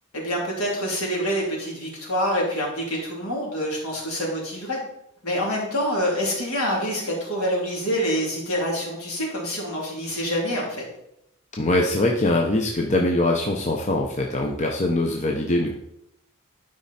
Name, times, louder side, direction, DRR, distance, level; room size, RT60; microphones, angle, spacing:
voice 1, 0.1-4.8 5.2-10.8, equal, 70° left, -3 dB, 3.3 m, -26 dB
voice 2, 11.6-15.7, left 2 dB, 30° left, 0 dB, 0.8 m, -22 dB
12.0 x 5.2 x 4.3 m, 0.81 s
head